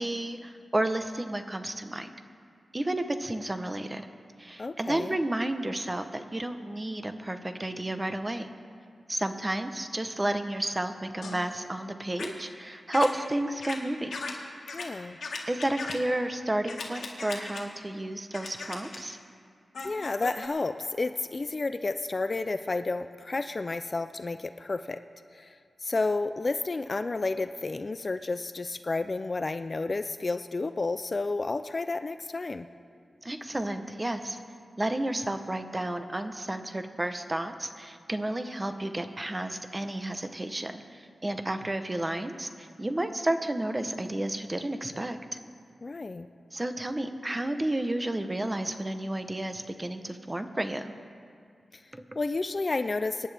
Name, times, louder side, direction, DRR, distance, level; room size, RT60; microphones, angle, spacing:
voice 1, 0.0-2.1 2.7-4.1 4.4-8.5 9.1-14.1 15.5-19.2 33.2-34.4 34.8-45.4 46.5-50.9 51.9-52.0, right 1 dB, 20° right, 8 dB, 0.8 m, -31 dB
voice 2, 4.6-5.2 14.7-15.2 19.8-25.0 25.3-32.7 45.8-46.3 51.7-51.8 52.2-53.3, left 3 dB, 35° left, 10 dB, 0.4 m, -31 dB
sound 1, 11.2-11.4 12.2-12.3 12.9-13.1 13.6-13.8 14.1-14.3 14.7-14.9 15.2-16.0 16.7-17.6 18.3-19.0 19.7-20.5, left 4 dB, 85° left, 1.8 m, -37 dB
25.5 x 10.0 x 3.4 m, 2.2 s
wide cardioid pair, 115°, 0 cm